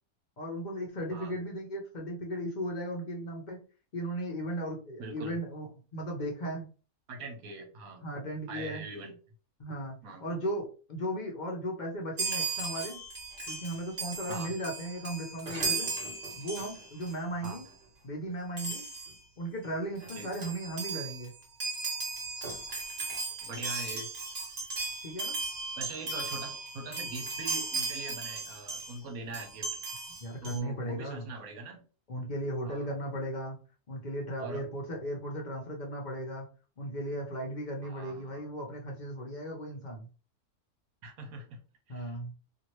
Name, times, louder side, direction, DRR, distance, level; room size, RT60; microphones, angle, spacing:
voice 1, 0.4-3.6 3.9-5.7 5.9-6.7 8.0-8.8 9.6-13.0 13.5-15.9 16.4-17.7 18.0-18.8 19.4-21.3 25.0-25.4 30.2-31.3 32.1-33.6 33.9-36.5 36.8-40.1 41.9-42.3, right 1 dB, 50° left, 0 dB, 0.5 m, -36 dB
voice 2, 5.0-5.4 7.1-8.0 8.5-9.1 10.0-10.2 14.3-14.5 17.4-17.6 20.1-20.3 23.4-24.1 25.8-29.7 30.4-31.8 32.6-32.9 34.4-34.6 37.8-38.4 41.0-42.2, right 2 dB, 70° right, 4 dB, 1.2 m, -42 dB
Chime, 12.2-17.1 17.4-17.7 18.6-19.2 19.7-19.8 20.0-29.0 29.3-30.6, right 4 dB, 45° right, 1.2 m, -36 dB
2.7 x 2.6 x 3.0 m, 0.36 s
omnidirectional pair, 1.6 m